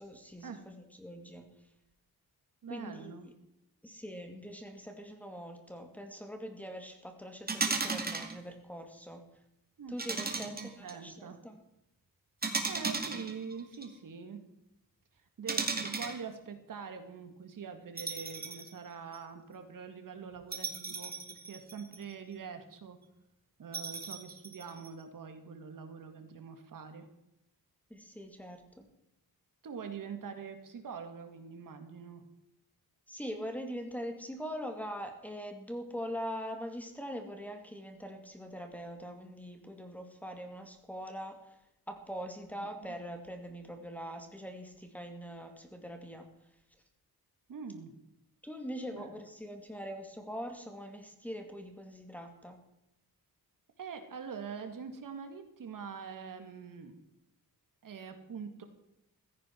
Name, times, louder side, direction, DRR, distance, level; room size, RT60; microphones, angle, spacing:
voice 1, 0.0-1.5 2.7-3.3 3.8-9.2 9.9-11.6 27.9-28.9 33.1-41.6 41.9-46.3 48.4-52.6, equal, 5° left, 5 dB, 2.2 m, -42 dB
voice 2, 2.6-3.2 9.8-10.0 10.3-11.4 12.7-14.4 15.4-23.0 23.6-27.1 29.6-32.2 42.6-42.7 47.5-47.9 48.9-49.1 53.8-56.9 57.8-58.6, right 6 dB, 60° right, 7 dB, 2.2 m, -44 dB
sound 1, 7.5-8.3 10.0-10.9 12.4-13.9 15.5-16.2 18.0-18.7 19.1-19.2 20.5-22.1 23.7-24.9, right 4 dB, 25° right, 2.3 m, -35 dB
16.0 x 15.0 x 4.6 m, 0.84 s
wide cardioid pair, 155°, 36 cm